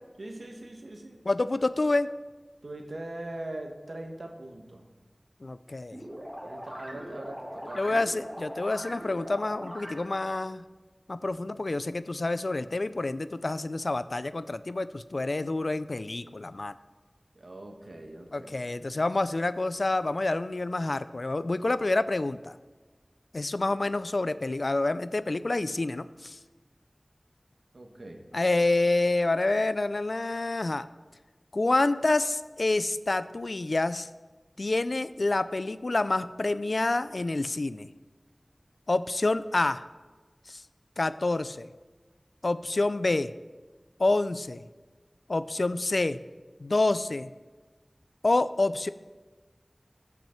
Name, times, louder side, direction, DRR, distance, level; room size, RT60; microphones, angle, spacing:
voice 1, 0.2-1.3 2.6-4.9 6.4-8.0 11.2-11.4 17.3-18.6 27.7-28.3, right 1 dB, 85° right, 3 dB, 1.2 m, -41 dB
voice 2, 1.3-2.1 5.4-6.0 7.8-10.6 11.1-16.7 18.3-22.6 23.3-26.4 28.3-30.9 31.5-34.1 34.6-37.9 38.9-39.8 40.5-40.6 41.0-41.7 42.4-43.3 44.0-44.6 45.3-46.2 46.6-47.3 48.2-48.9, left 2 dB, 75° left, 14 dB, 0.4 m, -28 dB
sound 1, 5.9-10.3, equal, 20° right, 2.2 m, -41 dB
14.5 x 6.0 x 4.4 m, 1.3 s
wide cardioid pair, 40°, 0 cm